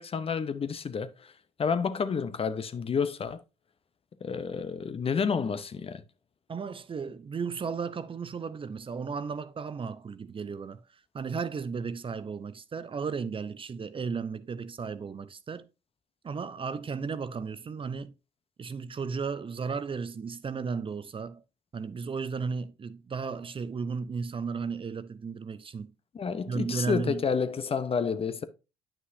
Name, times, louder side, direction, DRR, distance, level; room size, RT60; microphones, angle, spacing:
voice 1, 0.0-1.3 1.6-3.4 4.2-6.0 26.1-28.4, left 6 dB, 40° left, 0.8 m, -30 dB
voice 2, 6.5-10.8 11.1-15.7 16.2-18.1 18.6-21.4 21.7-25.9 26.5-27.2, right 5 dB, 35° right, 0.7 m, -34 dB
9.4 x 6.0 x 2.6 m
hypercardioid pair, 50°, 15 cm